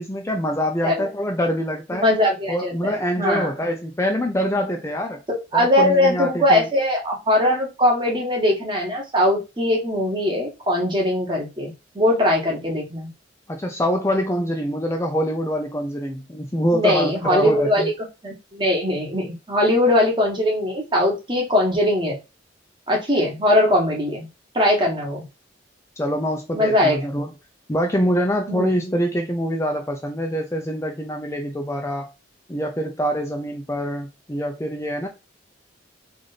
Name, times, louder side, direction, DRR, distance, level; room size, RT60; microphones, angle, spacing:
voice 1, 0.0-2.1 2.5-5.2 5.5-6.6 13.5-17.9 26.0-27.3 27.7-32.1 32.5-35.1, equal, 15° left, 0.5 m, -25 dB
voice 2, 1.9-3.5 5.3-13.1 16.7-17.9 18.2-22.2 22.9-24.3 24.5-25.3 26.5-27.0 28.5-28.7, left 1 dB, 25° right, 1.3 m, -21 dB
3.2 x 2.5 x 4.0 m
head